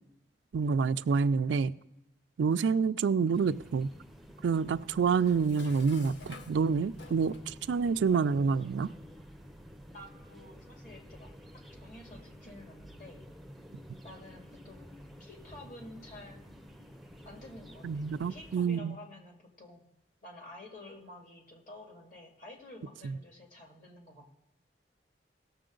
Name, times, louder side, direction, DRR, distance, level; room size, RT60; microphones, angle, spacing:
voice 1, 0.5-1.7 2.4-3.9 4.4-8.9 17.8-19.0 23.0-23.1, right 5 dB, 80° right, 0.4 m, -28 dB
sound 1, 3.3-18.5, equal, ahead, 0.6 m, -51 dB
Dishes pots and pans, 5.1-7.6, left 4 dB, 70° left, 0.8 m, -52 dB
voice 2, 9.9-13.2 14.0-16.4 17.2-19.8 20.2-24.3, left 1 dB, 50° left, 2.2 m, -51 dB
17.5 x 6.9 x 3.8 m
head